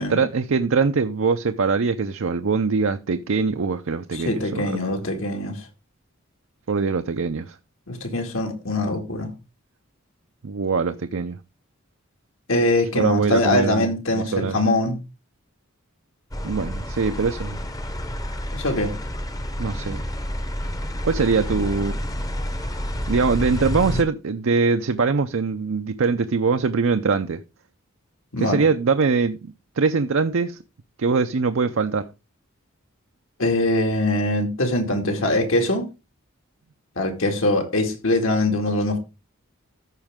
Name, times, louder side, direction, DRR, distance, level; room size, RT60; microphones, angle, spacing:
voice 1, 0.0-4.8 6.7-7.6 10.4-11.4 12.9-14.6 16.4-17.6 19.6-20.0 21.0-22.0 23.1-27.4 28.4-30.6 31.0-32.1, right 4 dB, 70° right, 0.5 m, -22 dB
voice 2, 4.1-5.7 7.9-9.3 12.5-15.0 18.5-18.9 28.3-28.7 33.4-35.9 37.0-39.0, left 1 dB, 70° left, 2.2 m, -22 dB
sound 1, 16.3-24.0, equal, 15° left, 0.8 m, -29 dB
14.0 x 5.3 x 3.6 m
head